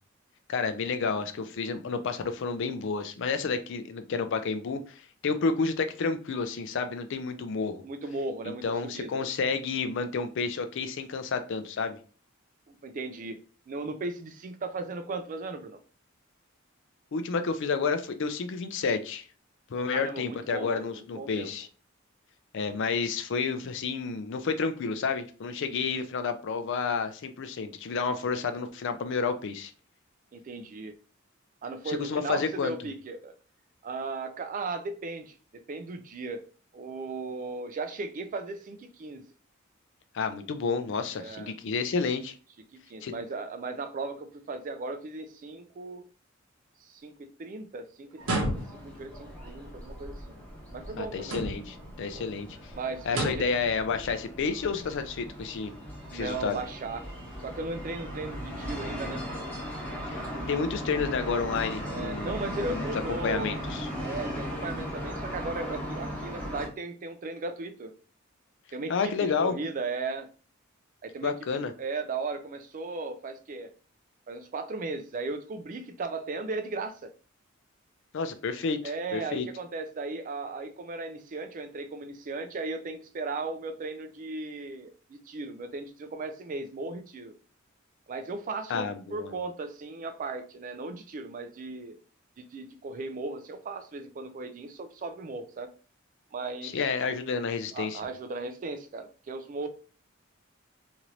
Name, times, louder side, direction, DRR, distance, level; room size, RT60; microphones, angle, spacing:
voice 1, 0.5-7.8 8.6-12.0 17.1-19.3 19.7-21.7 22.5-29.7 31.9-32.7 40.1-42.3 43.0-43.1 51.0-52.5 53.1-55.7 56.1-56.6 60.1-62.8 63.2-63.9 68.9-69.5 71.2-71.7 78.1-78.8 79.1-79.5 88.7-89.3 96.6-98.0, left 5 dB, 65° left, 0.4 m, -30 dB
voice 2, 7.8-9.2 12.7-13.4 13.7-15.8 19.9-21.5 30.3-31.0 31.6-33.3 33.8-36.4 36.7-39.2 41.1-41.5 42.7-46.1 46.8-50.4 50.7-51.5 52.0-52.3 52.7-53.5 56.1-57.1 57.4-59.2 61.8-63.6 64.0-67.9 68.7-70.3 71.0-71.3 71.8-73.7 74.3-77.1 78.8-87.3 88.1-92.0 92.4-95.7 96.3-96.8 97.7-99.7, right 3 dB, 40° right, 0.4 m, -36 dB
sound 1, 48.2-66.7, equal, 10° left, 1.0 m, -38 dB
sound 2, 48.2-49.0 51.2-51.8 53.1-53.6, right 1 dB, 85° right, 1.0 m, -31 dB
2.9 x 2.5 x 3.0 m
head